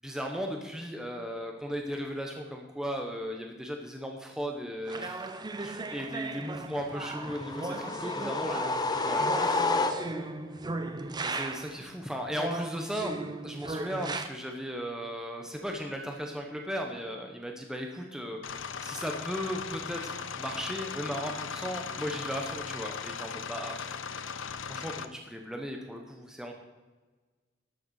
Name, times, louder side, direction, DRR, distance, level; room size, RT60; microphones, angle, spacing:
voice 1, 0.0-5.3 5.6-9.8 11.2-13.1 13.4-18.4 18.8-26.5, equal, 5° right, 2 dB, 1.0 m, -36 dB
sound 1, 4.9-11.8 12.3-14.3, right 2 dB, 20° right, 0.6 m, -37 dB
sound 2, 7.2-10.4, left 3 dB, 20° left, 0.8 m, -30 dB
sound 3, 18.4-25.1, left 6 dB, 70° left, 0.6 m, -38 dB
12.0 x 6.9 x 6.4 m, 1.3 s
head